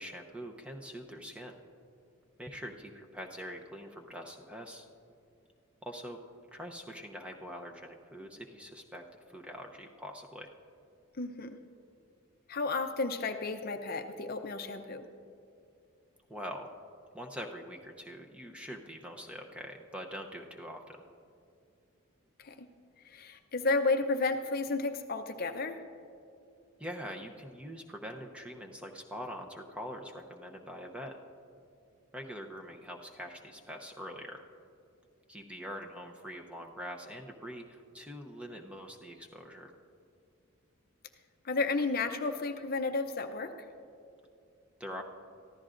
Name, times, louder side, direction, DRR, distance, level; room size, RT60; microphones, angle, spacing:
voice 1, 0.0-1.5 2.4-4.9 5.8-6.2 6.5-10.5 16.3-16.7 17.1-21.0 26.8-31.2 32.1-34.4 35.3-39.7 44.8-45.0, equal, 5° right, 2 dB, 0.7 m, -44 dB
voice 2, 11.2-11.6 12.5-15.1 22.4-22.7 23.0-25.8 41.4-43.5, left 3 dB, 45° left, 7 dB, 0.6 m, -32 dB
24.0 x 14.0 x 2.6 m, 2.5 s
head